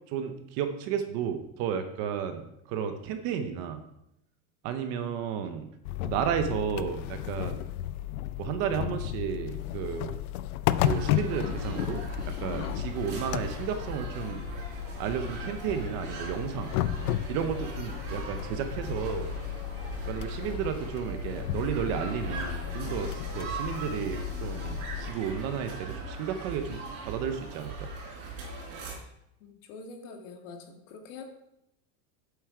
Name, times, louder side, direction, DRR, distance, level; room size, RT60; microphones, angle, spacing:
voice 1, 0.1-3.8 4.6-5.7 6.0-7.6 8.4-10.1 10.8-14.4 15.0-16.7 17.3-19.3 20.0-27.9, right 8 dB, 35° right, 8 dB, 0.7 m, -33 dB
sound 1, 5.8-25.1, left 13 dB, 80° left, 0.7 m, -34 dB
sound 2, 10.8-29.0, right 3 dB, 60° right, 4.1 m, -40 dB
voice 2, 29.4-31.2, left 4 dB, 60° left, 3 dB, 2.0 m, -45 dB
8.5 x 7.9 x 4.7 m, 0.82 s
supercardioid pair, 175°, 43 cm